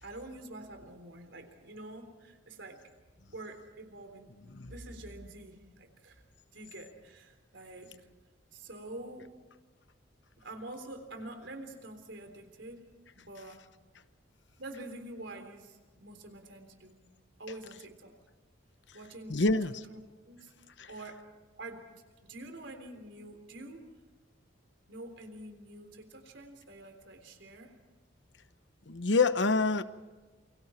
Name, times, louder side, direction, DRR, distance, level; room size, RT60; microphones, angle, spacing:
voice 1, 0.0-2.8 3.3-6.2 6.5-7.9 8.5-9.3 10.4-12.8 13.1-13.6 14.6-17.0 17.4-18.1 18.9-19.4 19.6-20.0 20.3-20.5 20.9-21.2 21.6-21.8 22.2-23.8 24.9-27.7, right 2 dB, 70° right, 6 dB, 3.6 m, -46 dB
voice 2, 19.3-19.8 20.8-20.9 28.9-29.8, left 3 dB, 65° left, 12 dB, 1.0 m, -26 dB
28.5 x 24.0 x 4.4 m, 1.3 s
head